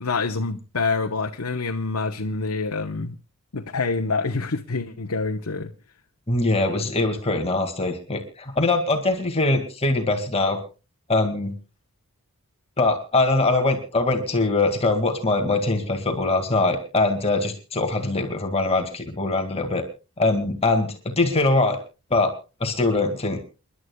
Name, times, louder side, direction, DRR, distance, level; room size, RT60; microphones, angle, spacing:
voice 1, 0.0-3.2 3.5-5.7, left 3 dB, 75° left, 1.0 m, -26 dB
voice 2, 6.3-10.6 11.1-11.5 12.8-19.8 20.2-21.8 22.1-22.3 22.6-23.4, left 2 dB, 30° left, 2.1 m, -22 dB
29.0 x 11.5 x 2.3 m
head